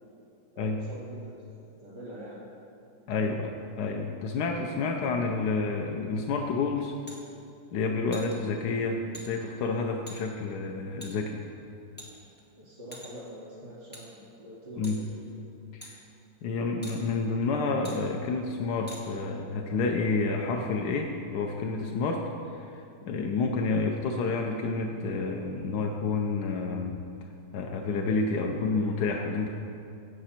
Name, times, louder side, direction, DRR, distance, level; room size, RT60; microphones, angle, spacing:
voice 1, 0.5-2.5 12.6-15.4, right 1 dB, 85° right, -7 dB, 3.4 m, -45 dB
voice 2, 3.1-6.9 7.7-11.4 14.8-15.0 15.7-16.0 16.4-22.2 22.5-27.0 27.5-29.5, left 4 dB, 85° left, 2 dB, 1.4 m, -29 dB
sound 1, 7.1-7.2 8.1-8.3 9.1-9.3 10.1-10.2 11.0-11.1 12.0-12.4 12.9-13.3 13.9-14.0 14.8-15.0 15.8-15.9 16.8-17.0 17.8-18.0 18.9-19.0, equal, 5° left, 1.8 m, -44 dB
16.0 x 8.0 x 4.3 m, 2.6 s
omnidirectional pair, 1.8 m